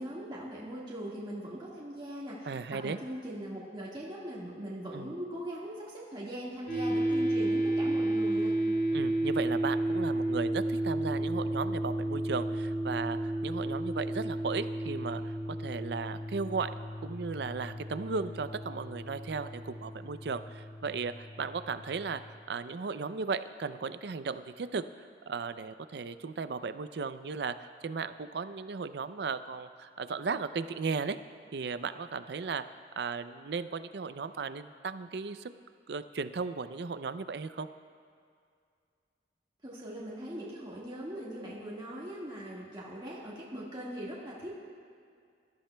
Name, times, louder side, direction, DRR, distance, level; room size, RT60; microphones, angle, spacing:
voice 1, 0.0-8.5 39.6-44.6, equal, 25° right, -7 dB, 1.7 m, -40 dB
voice 2, 2.5-3.0 4.9-5.1 8.9-16.7 17.0-22.2 22.5-31.2 31.5-32.6 33.0-35.5 35.9-37.7, right 4 dB, 65° right, 12 dB, 0.4 m, -36 dB
sound 1, 6.7-21.9, right 1 dB, 75° left, 3.5 m, -32 dB
21.5 x 13.0 x 2.2 m, 2.2 s
head